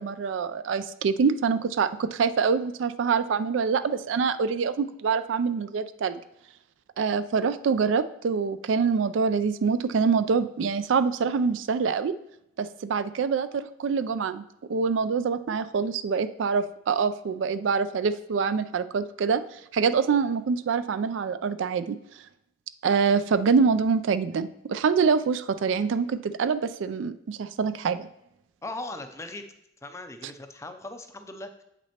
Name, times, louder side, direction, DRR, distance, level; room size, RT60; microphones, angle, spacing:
voice 1, 0.0-6.2 7.0-12.1 12.6-14.4 14.7-19.4 19.7-22.0 22.8-28.1, right 5 dB, 70° right, 13 dB, 0.4 m, -25 dB
voice 2, 28.6-29.4 29.8-31.6, left 2 dB, 15° left, 7 dB, 0.4 m, -39 dB
7.9 x 6.0 x 2.9 m, 0.80 s
head